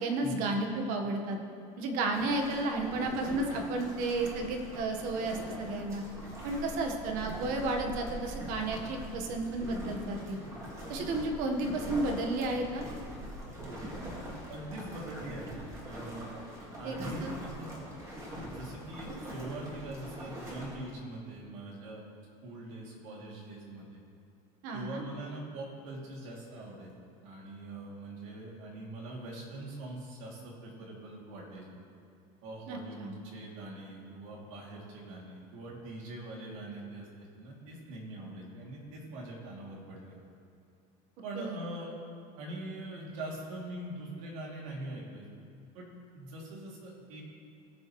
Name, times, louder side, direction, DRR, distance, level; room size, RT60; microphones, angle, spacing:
voice 1, 0.0-1.4 1.8-6.0 6.4-10.4 10.9-12.8 16.8-17.4 24.6-25.0 32.7-33.1 41.3-41.6, right 2 dB, 60° right, 3 dB, 1.3 m, -32 dB
sound 1, 2.1-20.8, equal, 20° right, 2.1 m, -43 dB
voice 2, 13.4-13.8 14.5-16.4 16.8-17.7 18.4-22.0 22.4-23.8 24.7-26.9 27.2-31.6 32.4-40.2 41.2-41.9 42.4-45.3 45.7-45.9 46.1-47.2, right 1 dB, 90° right, -3 dB, 2.8 m, -43 dB
18.5 x 6.9 x 3.2 m, 2.4 s
cardioid pair, 155°, 16 cm